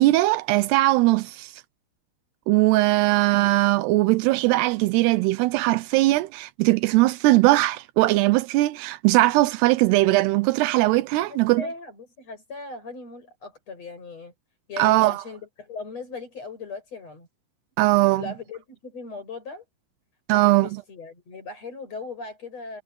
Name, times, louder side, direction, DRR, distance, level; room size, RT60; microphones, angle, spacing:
voice 1, 0.0-1.6 2.5-11.7 14.8-15.2 17.8-18.2 20.3-20.7, right 19 dB, 80° right, 2.4 m, -20 dB
voice 2, 11.3-14.3 14.7-17.3 18.1-19.6 20.3-22.8, left 4 dB, 35° left, 8.9 m, -38 dB
omnidirectional pair, 5.4 m